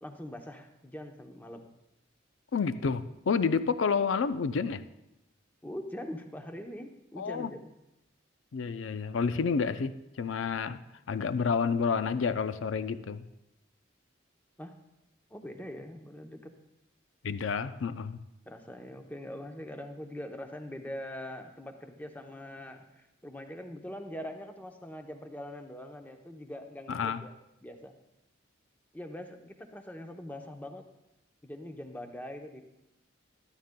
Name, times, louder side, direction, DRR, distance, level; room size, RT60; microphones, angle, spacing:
voice 1, 0.0-1.7 5.6-7.7 14.6-14.7 15.3-16.5 18.5-27.4 27.6-27.9 28.9-30.9 31.4-32.6, left 1 dB, 10° left, 4 dB, 0.7 m, -43 dB
voice 2, 2.5-4.8 7.2-7.5 8.5-10.8 11.1-13.2 17.2-18.2 26.9-27.2, left 5 dB, 80° left, 12 dB, 0.5 m, -29 dB
13.0 x 13.0 x 2.2 m, 0.89 s
head